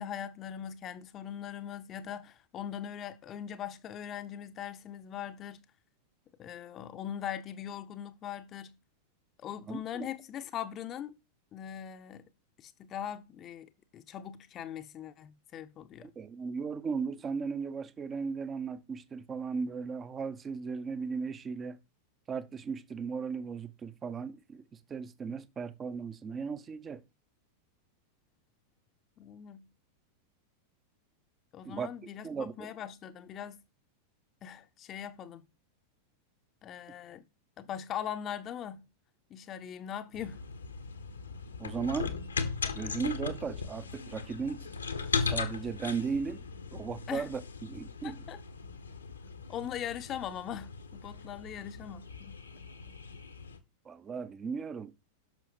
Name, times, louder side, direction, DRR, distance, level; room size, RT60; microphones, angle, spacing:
voice 1, 0.0-5.7 6.4-8.8 9.4-11.2 11.5-12.3 12.6-16.1 29.2-29.7 31.5-33.6 34.4-35.5 36.6-37.2 37.6-38.9 39.3-40.4 47.1-47.3 48.0-48.4 49.5-52.4, left 9 dB, 30° left, 0.8 m, -41 dB
voice 2, 9.7-10.1 16.0-21.8 22.3-27.0 31.6-31.9 32.2-32.7 41.6-42.1 42.7-44.7 45.2-46.4 46.7-48.2 53.8-54.9, right 5 dB, 20° right, 0.8 m, -36 dB
sound 1, 40.1-53.6, left 5 dB, 75° left, 1.2 m, -38 dB
10.5 x 6.2 x 4.7 m
figure-of-eight pair, 90°, 0 cm